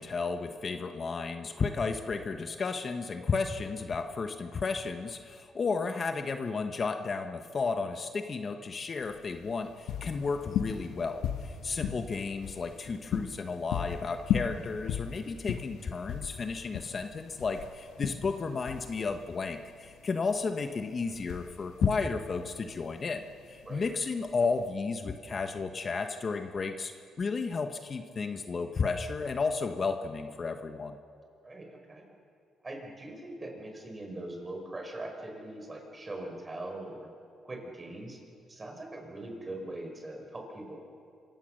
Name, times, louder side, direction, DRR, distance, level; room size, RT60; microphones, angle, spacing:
voice 1, 0.0-23.2 23.5-26.9 27.2-31.0, left 4 dB, 40° left, 7 dB, 1.1 m, -33 dB
sound 1, 9.0-24.7, left 9 dB, 80° left, 1.2 m, -37 dB
voice 2, 11.6-12.0 23.6-23.9 31.4-32.1 32.6-37.1 37.4-38.2 38.5-40.8, right 1 dB, 25° right, 2 dB, 5.1 m, -41 dB
26.0 x 16.5 x 6.5 m, 2.4 s
cardioid pair, 90°, 0 cm